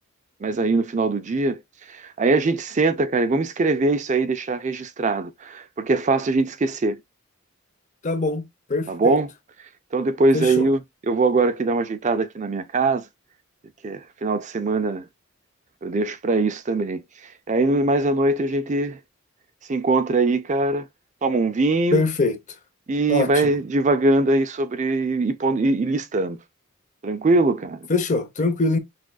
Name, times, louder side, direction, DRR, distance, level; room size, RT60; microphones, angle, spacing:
voice 1, 0.4-1.6 1.9-7.0 8.9-9.3 9.9-13.0 13.8-15.1 15.8-17.0 17.5-19.0 19.7-20.9 21.2-22.1 22.9-26.4 27.0-27.8, right 3 dB, 35° right, 0.4 m, -22 dB
voice 2, 8.0-8.4 8.7-9.2 10.3-10.6 21.9-22.4 23.1-23.5 27.9-28.8, left 3 dB, 35° left, 0.8 m, -23 dB
6.0 x 2.5 x 2.3 m
head